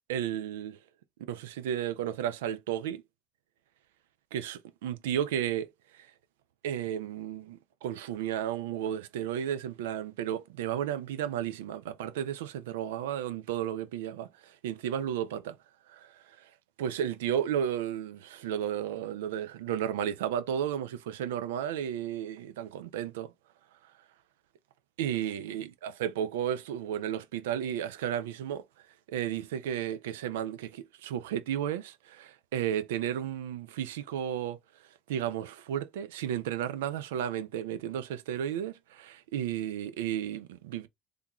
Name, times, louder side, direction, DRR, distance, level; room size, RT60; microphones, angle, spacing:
voice 1, 0.1-0.8 1.2-3.0 4.3-5.7 5.9-6.1 6.6-15.5 15.9-16.5 16.8-23.3 25.0-28.6 29.1-34.6 35.1-40.9, right 10 dB, 85° right, 0.4 m, -33 dB
3.5 x 2.4 x 2.9 m
hypercardioid pair, 70°, 0 cm